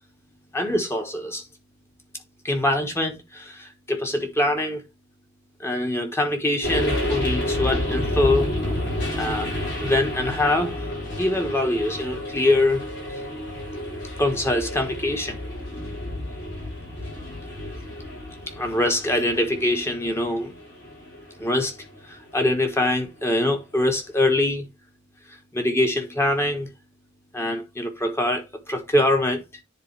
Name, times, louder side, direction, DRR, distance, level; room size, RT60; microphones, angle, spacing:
voice 1, 0.5-1.4 2.4-4.8 5.6-8.5 9.1-9.5 9.8-10.8 11.2-12.8 14.2-15.4 18.6-20.5 21.4-21.7 22.1-24.7 25.5-26.7 27.3-29.4, left 1 dB, 15° left, 1.2 m, -23 dB
sound 1, 6.6-22.9, left 1 dB, 65° left, 5.0 m, -30 dB
9.9 x 4.1 x 3.3 m
head